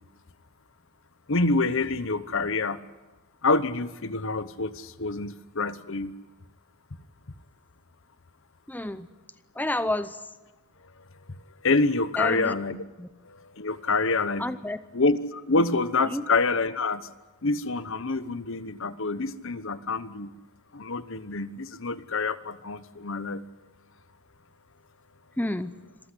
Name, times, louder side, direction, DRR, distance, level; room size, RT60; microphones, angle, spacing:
voice 1, 1.3-2.8 3.4-4.7 5.0-6.1 11.6-12.8 13.6-14.4 14.9-17.0 17.4-20.3 20.7-23.4, left 3 dB, 60° left, 14 dB, 1.0 m, -26 dB
voice 2, 8.7-9.1 9.6-10.2 12.2-12.5 13.0-13.1 14.4-14.8 16.1-16.2 25.4-25.7, left 1 dB, 10° left, 12 dB, 0.7 m, -29 dB
26.5 x 14.5 x 9.9 m, 1.2 s
head